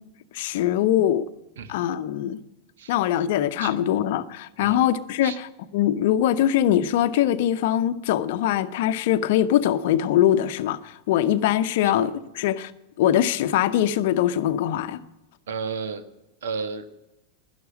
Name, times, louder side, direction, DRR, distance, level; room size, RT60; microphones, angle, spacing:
voice 1, 0.3-1.3 1.7-2.4 2.9-5.5 5.7-12.7 13.0-15.0, left 11 dB, 50° left, 12 dB, 0.8 m, -22 dB
voice 2, 15.5-16.0 16.4-16.9, right 5 dB, 60° right, 11 dB, 1.2 m, -32 dB
12.5 x 11.0 x 8.6 m, 0.96 s
figure-of-eight pair, 90°, 0 cm